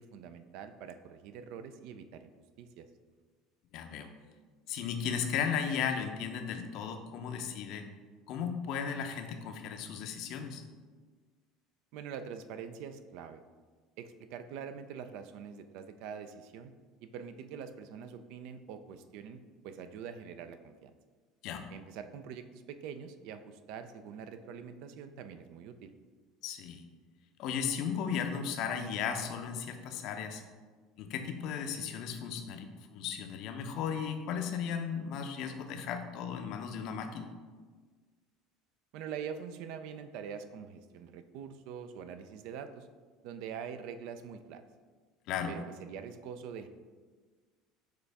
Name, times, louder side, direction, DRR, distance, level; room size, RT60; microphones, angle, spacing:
voice 1, 0.0-2.3 2.6-2.9 11.9-13.4 14.0-16.7 17.0-20.9 21.7-25.9 38.9-42.9 43.2-44.6 45.5-46.7, right 7 dB, 70° right, 10 dB, 0.3 m, -44 dB
voice 2, 3.7-4.1 4.7-7.9 8.3-10.6 21.4-21.7 26.4-26.8 27.4-30.4 31.0-37.3 45.3-45.6, left 7 dB, 65° left, 6 dB, 0.5 m, -35 dB
6.5 x 2.4 x 3.4 m, 1.5 s
hypercardioid pair, 80°, 0 cm